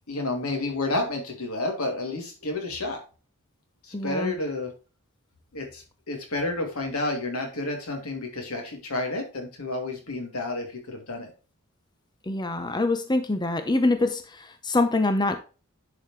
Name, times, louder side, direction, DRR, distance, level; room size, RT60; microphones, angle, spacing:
voice 1, 0.1-3.0 3.8-4.7 5.5-11.3, left 2 dB, 90° left, 2 dB, 2.8 m, -30 dB
voice 2, 3.9-4.4 12.3-15.4, left 2 dB, 20° left, 8 dB, 0.8 m, -25 dB
10.5 x 5.1 x 3.2 m, 0.34 s
head